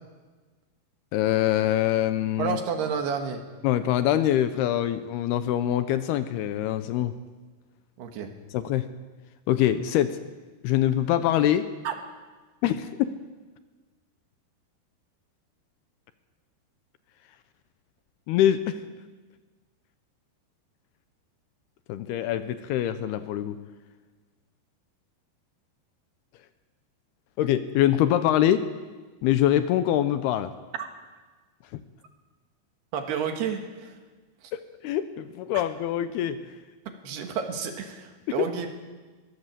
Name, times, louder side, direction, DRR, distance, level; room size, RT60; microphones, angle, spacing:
voice 1, 1.1-2.6 3.6-7.1 8.5-8.9 9.5-10.2 10.6-11.7 12.6-13.1 18.3-18.8 21.9-23.6 27.4-28.6 29.2-30.5 31.7-31.8 34.5-36.6 38.3-38.5, left 12 dB, 75° left, 11 dB, 2.5 m, -24 dB
voice 2, 2.4-3.4 8.0-8.3 11.9-12.0 30.8-30.9 32.9-33.9 36.9-38.7, right 6 dB, 70° right, 5 dB, 3.5 m, -30 dB
22.5 x 16.0 x 7.5 m, 1.3 s
omnidirectional pair, 5.0 m